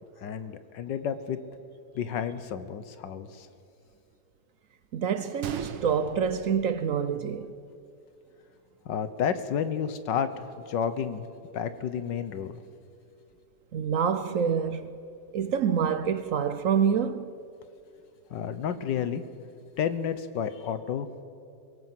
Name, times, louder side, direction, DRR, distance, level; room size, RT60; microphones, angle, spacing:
voice 1, 0.2-1.4 1.9-3.5 8.8-11.2 11.5-12.6 18.3-19.2 19.8-21.1, left 8 dB, 85° left, 1.7 m, -31 dB
voice 2, 4.9-7.5 13.7-14.9 15.3-17.3, right 7 dB, 60° right, 0.9 m, -27 dB
Gunshot gunfire, 5.4-7.4 7.7-7.8 8.5-8.7, right 8 dB, 90° right, 1.7 m, -41 dB
23.0 x 18.0 x 7.7 m
omnidirectional pair, 1.9 m